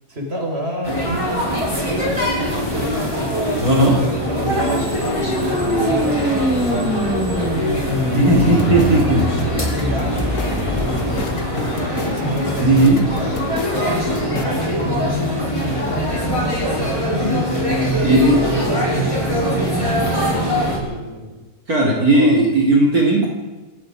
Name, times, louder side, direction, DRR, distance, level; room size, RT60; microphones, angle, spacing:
voice 1, 0.1-3.4 3.9-8.8 9.5-13.5 13.9-15.5 16.2-19.1 19.4-21.3 21.8-22.4, equal, 40° right, 1 dB, 5.7 m, -30 dB
sound 1, 0.8-20.8, equal, 20° left, 6.8 m, -22 dB
voice 2, 3.6-4.0 8.1-9.3 12.6-13.0 18.0-18.4 21.7-23.3, right 1 dB, 70° right, -2 dB, 4.2 m, -15 dB
sound 2, 4.1-11.2, equal, 5° right, 2.6 m, -25 dB
sound 3, 8.4-14.5, left 4 dB, 55° left, 2.0 m, -31 dB
26.5 x 18.5 x 5.2 m, 1.2 s
omnidirectional pair, 1.6 m